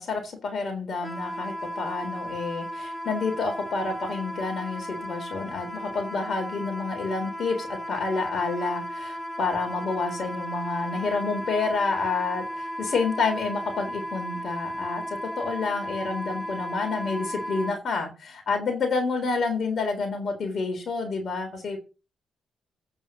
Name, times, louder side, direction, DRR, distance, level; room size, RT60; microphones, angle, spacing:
voice 1, 0.0-15.0 15.4-21.8, left 4 dB, 55° left, 3 dB, 3.7 m, -29 dB
Wind instrument woodwind instrument, 1.0-17.8, equal, 15° left, 1.6 m, -35 dB
8.7 x 5.4 x 6.4 m, 0.30 s
cardioid pair, 90°, 0 cm